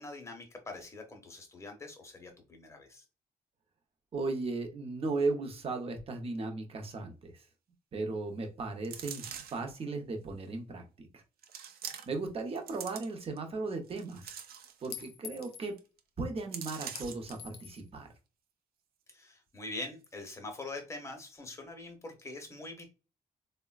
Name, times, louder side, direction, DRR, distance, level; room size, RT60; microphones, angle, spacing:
voice 1, 0.0-3.0 19.1-22.9, left 2 dB, 20° left, 0.7 m, -44 dB
voice 2, 4.1-7.5 7.9-9.2 9.5-11.2 12.1-14.4 14.8-15.7 16.2-18.1, right 3 dB, 40° right, 0.7 m, -36 dB
sound 1, 8.8-9.7 10.5-10.6 11.4-12.3 12.6-13.4 13.9-15.1 15.4-15.5 15.8-16.0 16.5-17.3 17.8-17.9, right 8 dB, 80° right, 0.5 m, -44 dB
Chink clink, 13.2-13.3 14.9-15.7 17.0-17.8, left 9 dB, 90° left, 0.4 m, -46 dB
3.7 x 2.1 x 2.3 m
wide cardioid pair, 160°, 16 cm